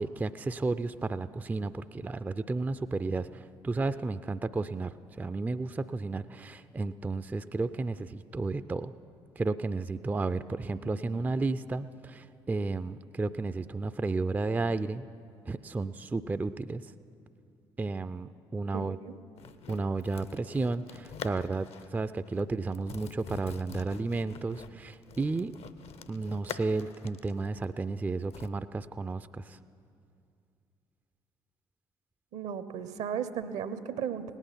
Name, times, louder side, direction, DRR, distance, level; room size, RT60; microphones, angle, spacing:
voice 1, 0.0-8.9 9.4-15.1 15.5-16.9 17.8-19.0 19.7-25.6 26.1-29.6, right 3 dB, 15° right, 13 dB, 0.3 m, -32 dB
voice 2, 10.8-11.2 18.7-19.2 32.3-34.2, right 8 dB, 60° right, 13 dB, 0.7 m, -36 dB
sound 1, 19.4-22.0 22.3-22.4 22.7-28.5, left 7 dB, 50° left, 0.6 m, -46 dB
18.0 x 9.0 x 5.8 m, 2.5 s
figure-of-eight pair, 45°, 13 cm